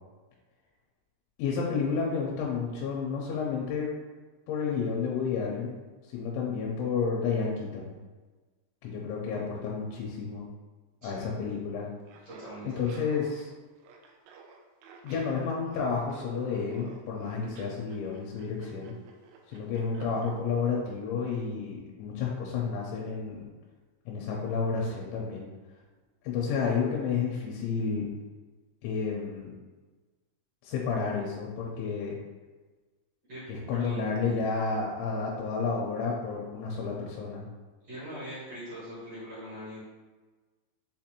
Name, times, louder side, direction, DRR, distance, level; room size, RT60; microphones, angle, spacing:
voice 1, 1.4-3.9 4.5-5.8 6.1-8.0 8.8-10.5 11.0-11.9 12.6-13.5 15.0-18.9 19.5-23.5 24.1-25.5 26.2-28.1 28.8-29.5 30.6-32.2 33.5-37.5, left 5 dB, 85° left, -2 dB, 2.9 m, -31 dB
Laughter, 12.0-20.4, right 4 dB, 90° right, 2.4 m, -52 dB
voice 2, 12.2-12.7 33.3-34.0 37.8-39.8, right 1 dB, 65° right, -12 dB, 1.6 m, -42 dB
6.9 x 2.5 x 2.9 m, 1.3 s
omnidirectional pair, 5.4 m